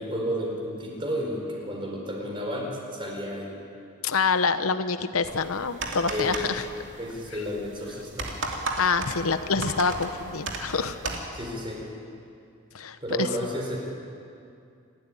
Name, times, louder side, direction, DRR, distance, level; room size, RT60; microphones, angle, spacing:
voice 1, 0.0-3.6 6.1-6.5 7.0-8.3 11.3-11.9 13.0-13.8, equal, 25° right, 0 dB, 4.6 m, -32 dB
voice 2, 4.0-6.6 8.8-11.0 12.7-13.3, left 4 dB, 90° left, 10 dB, 1.0 m, -26 dB
sound 1, 5.3-11.3, right 2 dB, 55° right, 2.9 m, -35 dB
28.0 x 13.0 x 9.9 m, 2.5 s
head